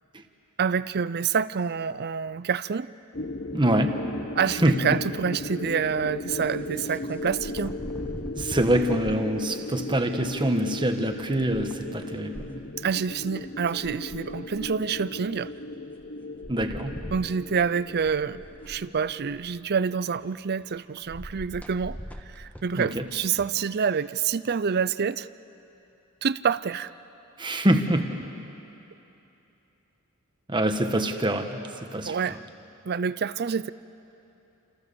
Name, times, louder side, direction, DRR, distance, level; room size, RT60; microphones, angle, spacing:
voice 1, 0.6-2.9 4.4-7.7 12.8-15.5 17.1-22.0 22.3-25.3 26.2-26.9 32.1-32.4 32.8-33.7, right 6 dB, 50° right, 16 dB, 0.5 m, -27 dB
sound 1, 3.1-20.1, left 2 dB, 40° left, 0.8 m, -37 dB
voice 2, 3.5-4.1 4.6-5.0 8.4-12.6 16.5-17.0 22.7-23.1 27.4-28.5 30.5-32.4, right 1 dB, 20° right, 5 dB, 1.5 m, -25 dB
sound 2, 6.3-9.2 10.2-12.5 13.2-13.3 13.4-14.9 16.0-16.1 16.4-19.6 21.1-23.5, equal, 5° left, 1.4 m, -42 dB
29.0 x 28.0 x 7.0 m, 3.0 s
head